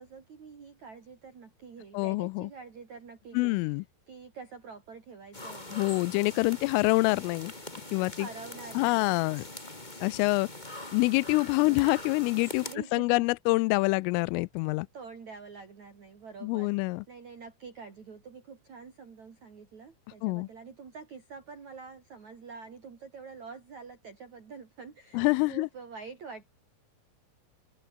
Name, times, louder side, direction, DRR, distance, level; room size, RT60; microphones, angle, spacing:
voice 1, 0.0-3.6 4.1-6.2 7.9-9.1 11.6-11.9 12.6-13.2 14.9-16.7 17.1-26.5, right 5 dB, 40° right, 4.3 m, -46 dB
voice 2, 1.9-2.5 3.3-3.8 5.7-7.5 7.9-8.3 8.8-9.4 10.0-10.5 10.9-12.7 12.9-14.9 16.4-17.0 20.2-20.5 25.1-25.7, left 25 dB, 90° left, 3.2 m, -26 dB
sound 1, 5.3-12.7, left 2 dB, 10° left, 2.9 m, -43 dB
omnidirectional pair, 5.7 m